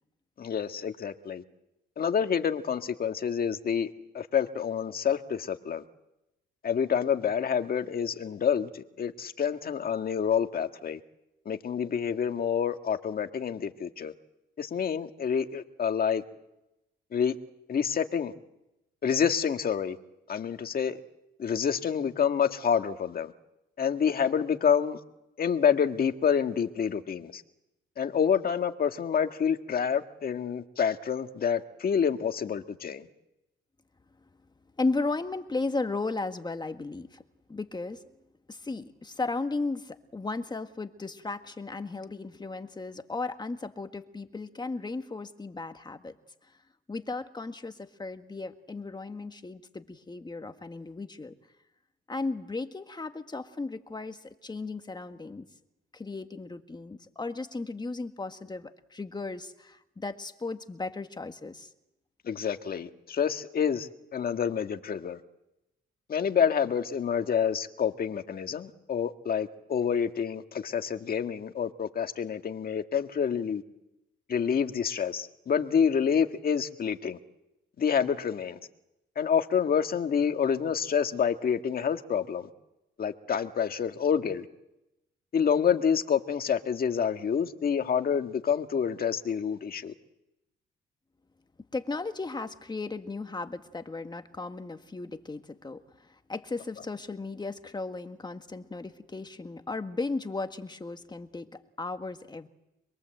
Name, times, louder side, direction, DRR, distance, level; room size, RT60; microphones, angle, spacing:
voice 1, 0.4-1.4 2.0-5.8 6.6-11.0 11.5-14.1 14.6-16.2 17.1-17.4 17.7-18.3 19.0-20.0 20.3-21.0 21.4-23.3 23.8-25.0 25.4-27.4 28.0-33.1 62.3-65.2 66.1-73.6 74.3-77.2 77.8-78.6 79.2-82.5 83.0-84.5 85.3-89.9, left 7 dB, 50° left, 6 dB, 1.7 m, -28 dB
voice 2, 34.8-37.2 37.5-38.0 38.5-46.2 46.4-46.6 46.9-51.4 52.1-55.5 55.9-61.7 91.7-102.5, left 3 dB, 20° left, 7 dB, 1.6 m, -35 dB
26.0 x 22.5 x 7.9 m, 0.91 s
cardioid pair, 90°, 20 cm